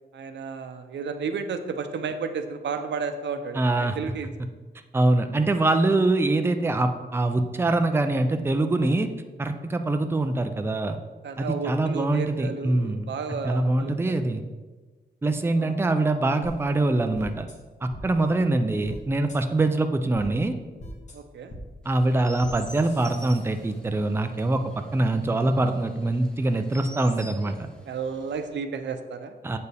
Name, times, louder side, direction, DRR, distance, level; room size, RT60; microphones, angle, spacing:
voice 1, 0.1-4.3 11.2-14.1 15.5-15.8 18.2-18.5 21.1-21.6 27.9-29.4, right 5 dB, 85° right, 8 dB, 0.6 m, -32 dB
voice 2, 3.5-4.0 4.9-9.1 9.4-11.0 11.4-13.1 13.4-14.4 15.2-17.5 17.8-20.5 21.9-24.6 24.9-27.5 29.4-29.6, right 2 dB, 15° right, 7 dB, 0.4 m, -24 dB
sound 1, 16.4-16.5 17.1-17.5 17.9-18.0 18.8-19.0 19.3-19.4 20.1-20.3 20.8-21.1 21.5-21.6 22.4-22.5 22.8-23.8, left 1 dB, 40° left, 1.3 m, -42 dB
Chirp tweet, 21.8-28.5, equal, 5° left, 0.8 m, -48 dB
8.1 x 6.8 x 3.4 m, 1.3 s
wide cardioid pair, 145°, 18 cm